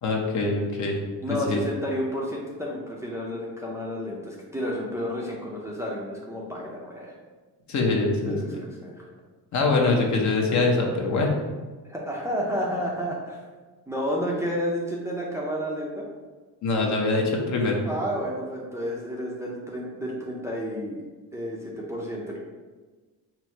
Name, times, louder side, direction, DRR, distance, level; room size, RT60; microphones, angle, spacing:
voice 1, 0.0-1.0 1.3-1.6 7.7-8.4 9.5-11.4 16.6-17.8, left 3 dB, 50° left, 0 dB, 0.8 m, -23 dB
voice 2, 1.2-7.1 8.3-9.0 11.9-13.4 13.9-16.1 17.9-21.0 21.3-22.4, equal, 10° right, -4 dB, 0.5 m, -31 dB
4.4 x 2.0 x 4.4 m, 1.3 s
cardioid pair, 115°, 38 cm